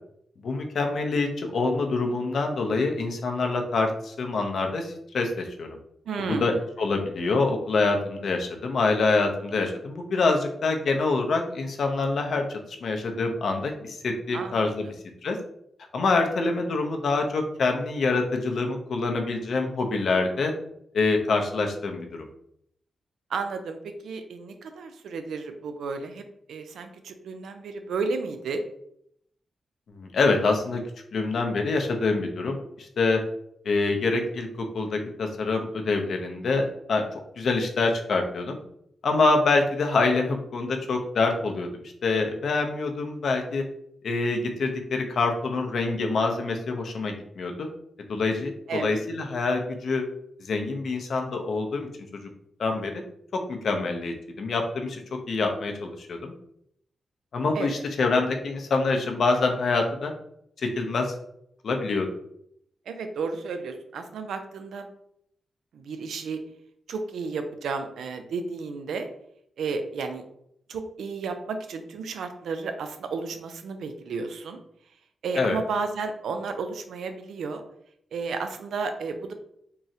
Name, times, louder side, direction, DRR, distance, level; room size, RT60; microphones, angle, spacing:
voice 1, 0.4-5.7 6.3-14.9 15.2-15.4 15.9-20.5 20.9-22.2 29.9-30.8 31.1-33.2 33.6-34.5 34.7-37.0 37.4-38.6 39.0-41.7 42.0-43.6 44.0-47.7 48.1-50.0 50.4-51.9 52.6-53.0 53.5-55.0 55.3-56.3 57.3-60.1 60.6-61.1 61.6-62.1 75.4-75.6, left 3 dB, 70° left, 3 dB, 0.5 m, -26 dB
voice 2, 6.1-6.6 14.3-14.7 23.3-26.2 26.5-28.6 48.7-49.0 57.5-57.8 62.9-64.9 65.7-66.4 66.9-69.1 69.6-70.2 70.7-74.6 75.2-77.6 78.1-79.3, right 4 dB, 85° right, 7 dB, 0.4 m, -32 dB
3.7 x 2.0 x 2.7 m, 0.73 s
cardioid pair, 80°, 0 cm